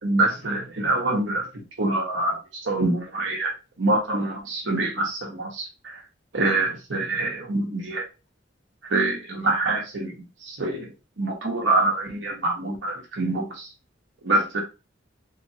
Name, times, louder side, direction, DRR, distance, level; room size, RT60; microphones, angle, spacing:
voice 1, 0.0-6.0 6.3-8.0 8.9-10.2 10.4-13.7 14.2-14.6, right 2 dB, 75° right, 0 dB, 1.1 m, -25 dB
3.3 x 2.9 x 2.8 m, 0.29 s
head